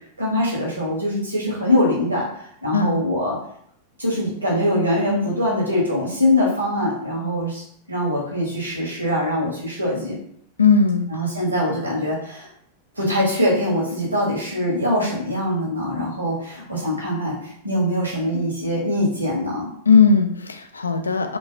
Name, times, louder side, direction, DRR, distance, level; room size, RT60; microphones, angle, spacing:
voice 1, 0.2-3.4 4.0-7.6 7.9-10.2 11.1-12.5 12.9-19.7, left 1 dB, 85° right, -4 dB, 1.4 m, -23 dB
voice 2, 10.6-11.0 19.9-21.4, left 5 dB, 75° left, 6 dB, 0.4 m, -17 dB
3.1 x 3.1 x 2.8 m, 0.64 s
figure-of-eight pair, 90°, 0 cm